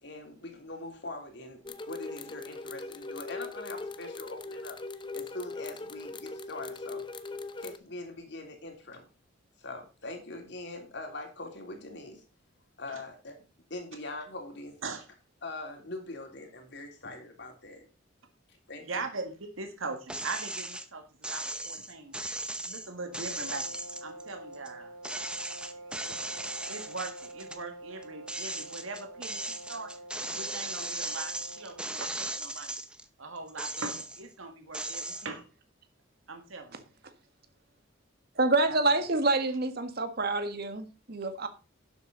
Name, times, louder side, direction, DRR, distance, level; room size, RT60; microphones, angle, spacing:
voice 1, 0.0-4.8 5.1-7.0 7.6-9.0 9.6-12.2 12.8-13.4 13.7-14.8 15.4-17.9 18.7-19.0, left 2 dB, 60° left, 3 dB, 3.3 m, -42 dB
sound 1, 1.6-7.8, left 3 dB, 25° left, 0.8 m, -40 dB
voice 2, 18.9-22.1 22.6-23.6 24.0-24.9 26.0-29.9 30.3-32.8 33.2-35.4 36.3-36.8 38.6-38.8, right 3 dB, 85° right, 5 dB, 2.0 m, -40 dB
sound 2, 20.1-20.9 21.2-24.7 25.0-27.6 28.0-33.0 33.5-34.3 34.7-35.3, right 1 dB, 5° right, 0.8 m, -37 dB
sound 3, 23.0-32.0, right 1 dB, 65° right, 5.1 m, -47 dB
voice 3, 38.3-41.5, right 2 dB, 50° right, 9 dB, 1.7 m, -27 dB
11.5 x 7.9 x 4.0 m, 0.32 s
head